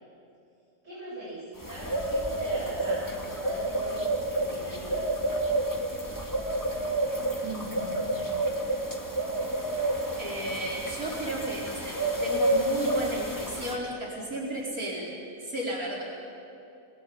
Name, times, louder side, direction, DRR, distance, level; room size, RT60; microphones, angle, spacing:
voice 1, 0.8-5.3, right 1 dB, 50° right, -9 dB, 7.7 m, -41 dB
sound 1, 1.6-13.7, right 1 dB, 10° left, 2.1 m, -30 dB
voice 2, 7.4-8.3 10.2-15.1 15.4-16.0, right 1 dB, 65° right, -3 dB, 4.8 m, -34 dB
30.0 x 21.0 x 8.7 m, 2.6 s
omnidirectional pair, 1.7 m